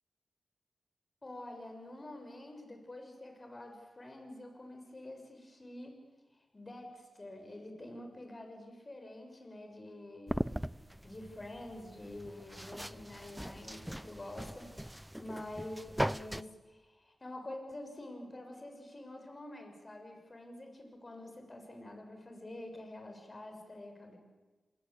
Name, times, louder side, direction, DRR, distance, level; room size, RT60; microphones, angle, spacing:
voice 1, 1.2-5.9 6.3-10.5 11.0-24.2, left 1 dB, 35° left, 4 dB, 6.4 m, -47 dB
sound 1, 10.3-16.4, equal, 5° right, 0.7 m, -39 dB
29.0 x 20.0 x 8.6 m, 1.2 s
cardioid pair, 55°, 0 cm